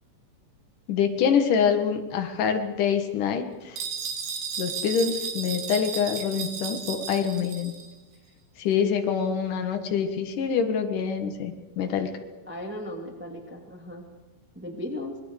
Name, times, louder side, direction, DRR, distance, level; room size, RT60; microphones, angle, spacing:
voice 1, 0.9-3.8 4.6-7.7 8.6-12.1, left 7 dB, 60° left, 6 dB, 2.3 m, -25 dB
sound 1, 3.8-7.9, right 6 dB, 60° right, 4.4 m, -34 dB
voice 2, 12.5-14.1 14.5-15.1, left 1 dB, 5° right, 1 dB, 0.9 m, -36 dB
27.0 x 20.5 x 6.5 m, 1.2 s
omnidirectional pair, 5.7 m